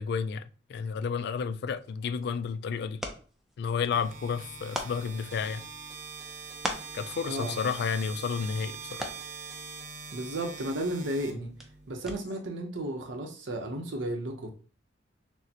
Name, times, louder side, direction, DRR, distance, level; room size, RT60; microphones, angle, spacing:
voice 1, 0.0-3.0 3.6-5.6 6.9-9.1, left 6 dB, 60° left, 0.3 m, -31 dB
sound 1, 1.8-12.6, equal, ahead, 0.5 m, -44 dB
sound 2, 3.9-11.9, right 5 dB, 50° right, 0.8 m, -43 dB
voice 2, 7.2-7.7 10.1-11.5 11.9-14.5, right 1 dB, 80° right, 0.8 m, -33 dB
6.2 x 2.1 x 2.9 m
head